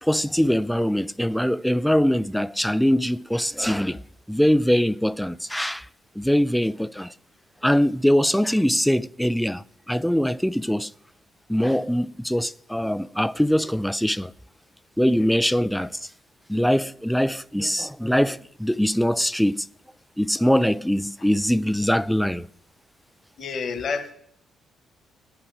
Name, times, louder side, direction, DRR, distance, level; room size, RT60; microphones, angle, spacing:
voice 1, 0.0-4.0 4.3-5.9 6.2-7.1 7.6-10.9 11.5-14.3 15.0-16.1 16.5-19.7 20.2-22.5, equal, ahead, 0.4 m, -22 dB
voice 2, 23.4-24.1, left 5 dB, 55° left, 1.6 m, -29 dB
9.6 x 6.0 x 6.3 m
cardioid pair, 90°, 0 cm